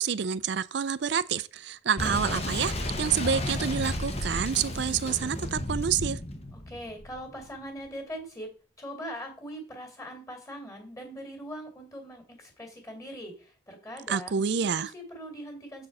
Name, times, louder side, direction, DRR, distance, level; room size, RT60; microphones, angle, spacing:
voice 1, 0.0-6.2 14.1-14.9, right 7 dB, 60° right, 0.4 m, -28 dB
Boom, 2.0-7.5, left 1 dB, 30° left, 1.0 m, -33 dB
voice 2, 6.5-15.9, equal, 15° left, 2.4 m, -41 dB
7.6 x 4.7 x 5.4 m
head